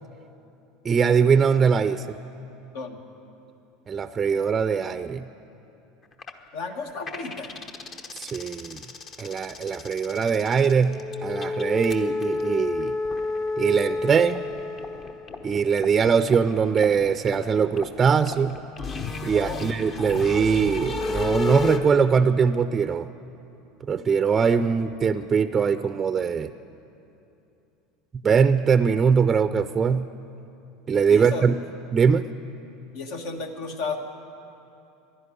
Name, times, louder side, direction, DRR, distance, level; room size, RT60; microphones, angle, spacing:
voice 1, 0.8-2.2 3.9-5.2 8.1-8.8 9.2-12.9 13.6-14.4 15.4-18.5 19.2-23.1 23.9-26.5 28.2-30.1 30.9-31.5 31.9-32.3, right 6 dB, 30° right, 12 dB, 0.4 m, -22 dB
sound 1, 6.2-6.3 6.7-21.8, left 3 dB, 40° left, 1.1 m, -31 dB
voice 2, 6.5-7.5 19.3-19.6 31.1-31.5 32.9-34.0, left 4 dB, 70° left, 5 dB, 1.5 m, -33 dB
11.5 x 11.0 x 9.9 m, 2.8 s
hypercardioid pair, 90°, 0 cm